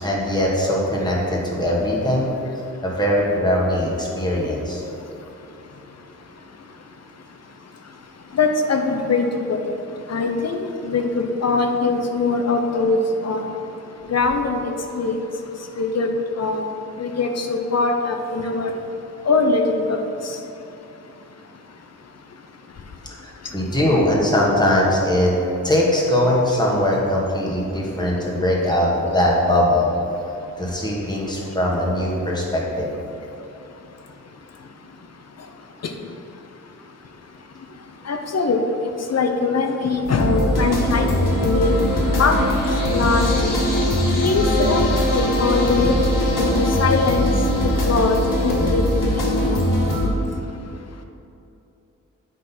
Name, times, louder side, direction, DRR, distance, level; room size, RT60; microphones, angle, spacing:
voice 1, 0.0-2.3 2.8-4.8 23.2-25.3 25.6-29.9 30.6-32.9, left 1 dB, 15° left, -4 dB, 1.4 m, -21 dB
voice 2, 8.3-9.6 10.1-10.6 10.8-13.5 14.1-14.6 15.0-15.2 15.8-16.1 16.4-16.6 17.0-18.7 19.3-20.0 20.3-20.4 38.1-38.6 39.1-41.7 42.1-42.4 42.9-43.5 44.2-45.9 46.4-47.3 47.6-48.8 49.2-49.3, left 4 dB, 55° left, 4 dB, 0.6 m, -21 dB
sound 1, 40.1-50.1, left 1 dB, 90° left, 1.6 m, -21 dB
8.6 x 5.3 x 4.1 m, 2.8 s
wide cardioid pair, 120°, 32 cm